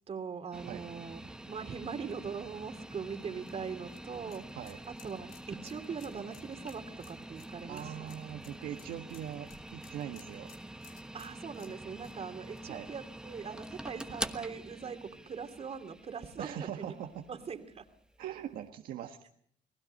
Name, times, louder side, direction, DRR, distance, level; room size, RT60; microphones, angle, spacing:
voice 1, 0.1-4.4 4.9-8.2 11.1-16.9 17.3-17.8, right 6 dB, 45° right, 8 dB, 2.6 m, -41 dB
sound 1, 0.5-18.6, right 1 dB, 5° right, 1.2 m, -46 dB
sound 2, 2.9-13.6 14.0-14.1 15.6-15.7, left 8 dB, 80° left, 3.6 m, -60 dB
voice 2, 7.7-10.5 12.7-12.9 16.4-17.3 18.2-19.3, right 10 dB, 80° right, 5 dB, 1.5 m, -41 dB
29.0 x 19.5 x 5.4 m, 0.64 s
cardioid pair, 100°, 15 cm